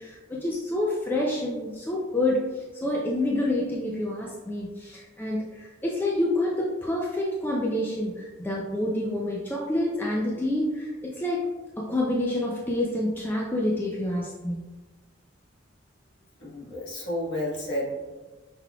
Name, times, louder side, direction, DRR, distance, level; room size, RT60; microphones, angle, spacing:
voice 1, 0.0-11.5 11.8-14.6, left 1 dB, 10° left, -3 dB, 0.4 m, -28 dB
voice 2, 16.4-17.9, left 1 dB, 60° left, -5 dB, 1.5 m, -31 dB
5.8 x 3.8 x 2.3 m, 1.2 s
head